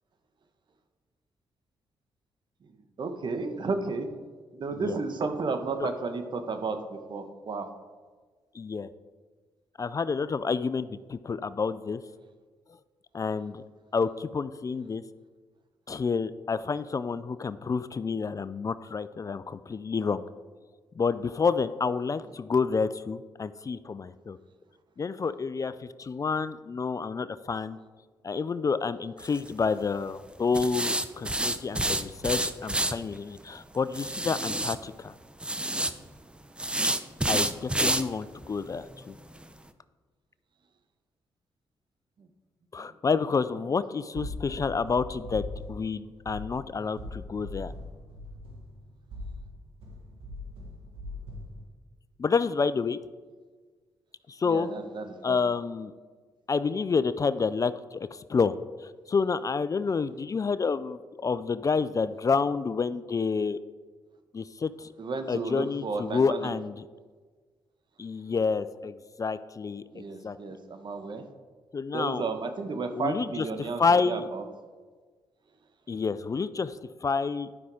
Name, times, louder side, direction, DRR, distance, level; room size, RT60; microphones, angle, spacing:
voice 1, 3.0-4.1 4.5-7.7 42.8-42.9 54.4-55.4 65.0-66.5 69.9-71.2 71.9-74.4, right 4 dB, 55° right, 7 dB, 1.2 m, -33 dB
voice 2, 8.5-8.9 9.8-12.0 13.1-13.6 13.9-15.0 15.9-20.2 21.0-24.4 25.0-27.8 28.2-35.1 37.3-39.1 42.7-47.7 52.2-53.0 54.3-54.7 55.2-55.9 56.5-63.6 64.3-64.9 65.3-66.8 68.0-70.4 71.7-72.2 72.9-74.3 75.9-77.5, left 5 dB, 35° left, 15 dB, 0.4 m, -29 dB
sound 1, 29.2-29.5 30.5-32.9 33.9-34.7 35.4-35.9 36.6-38.0 38.4-38.5 38.9-39.0 39.4-39.5, right 1 dB, 10° right, 0.7 m, -28 dB
sound 2, 44.1-51.6, left 1 dB, 85° right, 1.5 m, -41 dB
11.0 x 5.7 x 4.8 m, 1.4 s
supercardioid pair, 55°, 10 cm